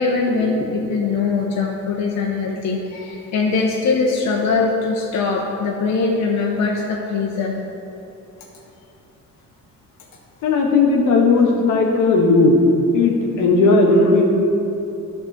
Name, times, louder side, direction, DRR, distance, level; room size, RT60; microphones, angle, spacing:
voice 1, 0.0-7.6, left 4 dB, 65° left, -1 dB, 0.9 m, -21 dB
voice 2, 10.4-12.5 12.9-14.3, left 3 dB, 80° left, 1 dB, 1.3 m, -16 dB
11.0 x 3.7 x 6.5 m, 2.8 s
cardioid pair, 90°, 30 cm